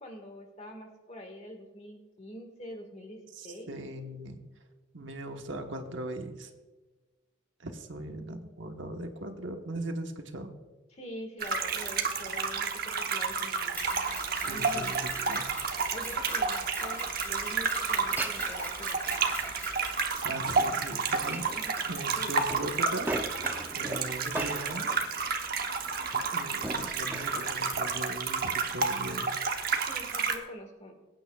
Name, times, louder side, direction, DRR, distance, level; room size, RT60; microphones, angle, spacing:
voice 1, 0.0-3.8 10.9-14.0 14.4-14.9 15.9-19.0 21.3-21.8 22.2-22.4 29.8-31.0, equal, 35° left, 4 dB, 1.7 m, -45 dB
voice 2, 3.3-4.4 4.9-6.5 7.6-10.5 14.4-15.5 20.2-21.4 21.9-23.1 23.8-24.9 26.3-29.3, right 1 dB, 70° right, 5 dB, 1.1 m, -39 dB
sound 1, 11.4-30.4, right 5 dB, 50° right, 1.0 m, -31 dB
Mechanisms, 13.8-20.1, left 1 dB, 10° left, 3.2 m, -42 dB
Glass, 17.9-27.9, right 1 dB, 10° right, 0.5 m, -41 dB
22.5 x 8.9 x 2.4 m, 1.2 s
head